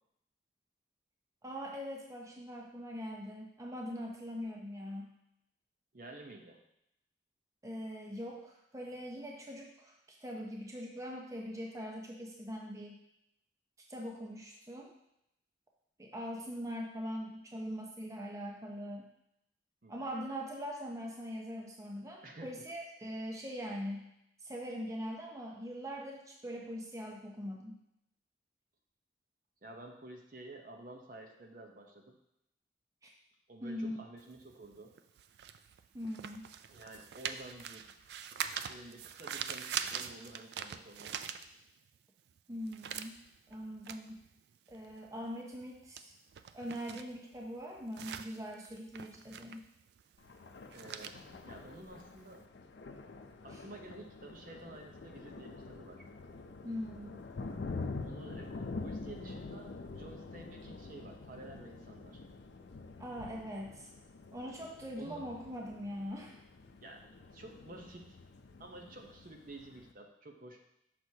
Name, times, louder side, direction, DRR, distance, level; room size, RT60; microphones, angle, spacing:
voice 1, 1.4-5.1 7.6-13.0 13.8-14.9 16.0-19.1 19.9-24.1 24.4-27.8 33.0-33.1 33.6-34.0 35.9-36.5 42.5-44.2 44.7-46.1 46.5-49.7 53.5-53.6 56.6-57.2 63.0-63.9 64.3-66.4, equal, 20° right, 0 dB, 0.6 m, -42 dB
voice 2, 5.9-6.6 19.8-20.1 22.2-22.5 29.6-32.2 33.5-34.9 36.7-37.9 38.7-41.4 50.7-52.5 53.4-56.0 58.0-62.2 65.0-65.2 66.8-68.2 68.6-70.6, right 2 dB, 50° right, 2 dB, 0.8 m, -51 dB
sound 1, 34.2-42.0 42.3-52.4, right 8 dB, 65° right, 0.3 m, -44 dB
Thunder, 50.2-69.9, left 3 dB, 80° left, 0.5 m, -46 dB
6.1 x 6.0 x 2.8 m, 0.80 s
head